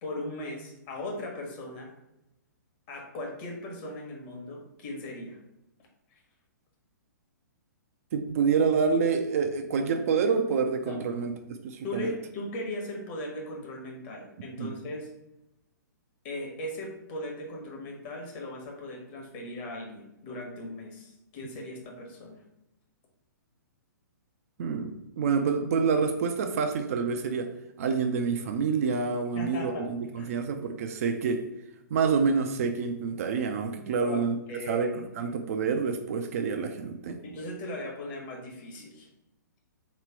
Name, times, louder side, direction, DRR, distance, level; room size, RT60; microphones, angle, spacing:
voice 1, 0.0-1.9 2.9-5.4 6.1-6.2 10.8-11.0 11.8-15.1 16.2-22.4 29.3-29.9 30.2-30.3 34.0-35.0 37.2-39.1, left 1 dB, 35° left, 0 dB, 1.2 m, -38 dB
voice 2, 8.1-12.1 14.6-14.7 24.6-27.5 27.8-31.5 31.9-34.4 34.7-34.9 35.2-37.2, right 5 dB, 50° right, 6 dB, 0.5 m, -27 dB
3.3 x 3.1 x 4.4 m, 0.88 s
figure-of-eight pair, 120°, 10 cm